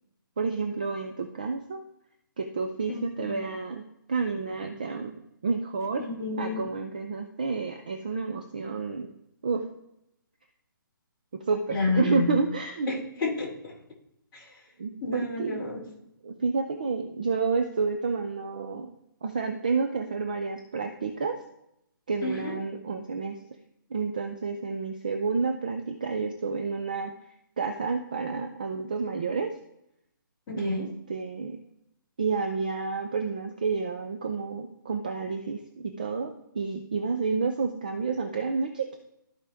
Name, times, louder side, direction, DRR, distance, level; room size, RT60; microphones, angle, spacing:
voice 1, 0.4-1.8 2.4-3.8 4.1-5.1 5.4-6.1 6.4-9.1 9.4-9.6 11.3-12.9 14.8-15.7 16.2-18.9 19.2-21.4 22.1-23.4 23.9-27.1 27.6-29.5 30.5-31.6 32.2-39.1, right 4 dB, 25° right, 5 dB, 0.4 m, -30 dB
voice 2, 2.9-3.4 6.0-6.6 11.7-12.4 12.9-13.7 14.3-14.5 15.0-15.8 22.2-22.6 30.5-30.9, left 3 dB, 15° left, -9 dB, 2.5 m, -30 dB
13.5 x 4.9 x 3.4 m, 0.81 s
hypercardioid pair, 175°, 11 cm